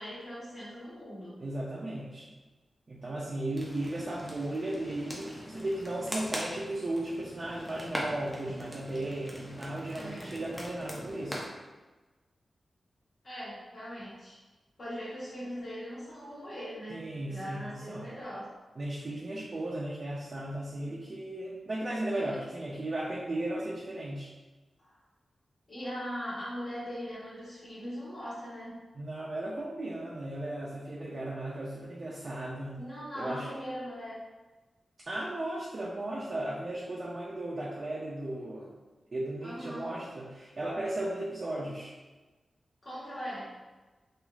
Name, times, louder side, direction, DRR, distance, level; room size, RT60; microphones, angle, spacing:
voice 1, 0.0-1.4 9.9-10.4 13.2-14.4 14.8-18.5 22.1-22.4 24.8-25.0 25.7-28.8 32.7-34.2 39.4-40.0 42.8-43.6, equal, 50° left, -9 dB, 1.3 m, -40 dB
voice 2, 1.4-2.3 2.9-11.4 16.9-18.2 18.8-24.3 28.9-32.8 33.1-33.5 35.1-38.8 39.1-41.9, right 1 dB, 45° right, -6 dB, 0.4 m, -36 dB
sound 1, 3.6-11.5, equal, 10° left, 0.5 m, -41 dB
3.0 x 2.4 x 2.3 m, 1.2 s
wide cardioid pair, 110°, 0 cm